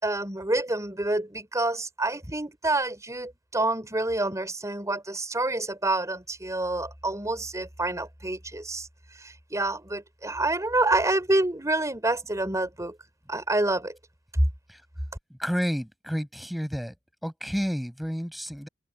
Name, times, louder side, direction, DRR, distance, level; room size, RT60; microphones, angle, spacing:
voice 1, 0.0-8.9 9.1-12.9 13.3-13.9, right 2 dB, 15° right, 4.7 m, -28 dB
voice 2, 15.4-16.9 17.2-18.7, equal, ahead, 7.3 m, -30 dB
open air
head